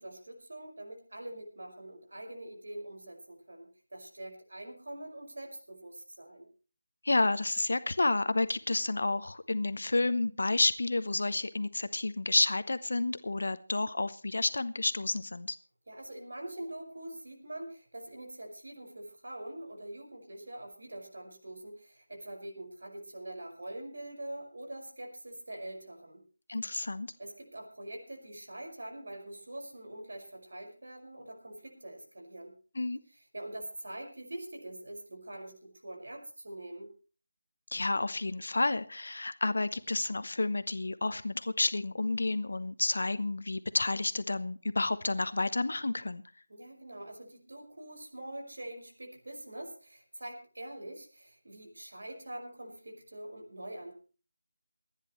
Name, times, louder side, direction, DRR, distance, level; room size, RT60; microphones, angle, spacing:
voice 1, 0.0-6.5 15.9-26.2 27.2-32.5 33.1-36.9 46.5-53.9, right 1 dB, 75° right, 2 dB, 5.5 m, -44 dB
voice 2, 7.0-15.6 26.5-27.1 32.8-33.0 37.7-46.2, left 2 dB, 70° left, 13 dB, 0.9 m, -30 dB
28.0 x 10.0 x 3.1 m, 0.37 s
figure-of-eight pair, 170°, 0 cm